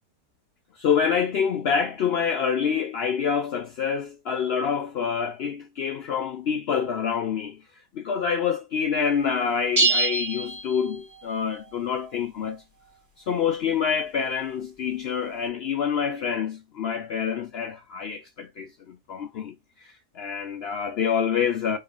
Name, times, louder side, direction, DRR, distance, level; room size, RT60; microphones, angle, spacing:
voice 1, 0.7-7.6 7.9-12.6 13.2-21.8, left 7 dB, 85° left, 0.5 m, -27 dB
sound 1, 9.8-11.3, right 2 dB, 15° right, 0.8 m, -25 dB
4.1 x 3.5 x 3.6 m
omnidirectional pair, 1.7 m